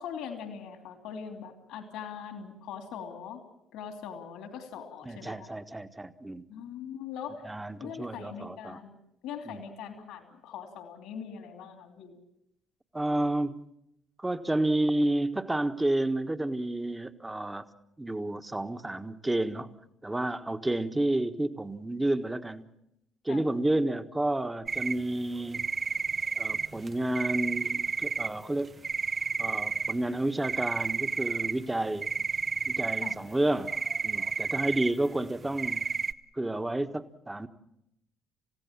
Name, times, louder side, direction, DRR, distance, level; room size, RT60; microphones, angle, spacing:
voice 1, 0.0-3.4 3.7-5.5 6.5-7.4 7.8-9.0 9.2-12.2 23.3-23.5 33.0-33.2, left 7 dB, 70° left, 6 dB, 3.0 m, -41 dB
voice 2, 5.0-6.4 7.4-8.8 9.5-9.6 12.9-13.6 14.2-17.6 18.0-22.7 23.2-25.8 26.4-28.7 29.4-32.1 32.6-33.7 34.0-35.8 36.3-37.5, right 1 dB, 15° right, 9 dB, 1.5 m, -30 dB
sound 1, 24.7-25.0 25.5-28.3 28.6-30.1 30.4-35.0 35.4-36.1, right 5 dB, 35° right, 0.9 m, -31 dB
29.5 x 16.0 x 7.4 m, 0.83 s
hypercardioid pair, 50°, 0 cm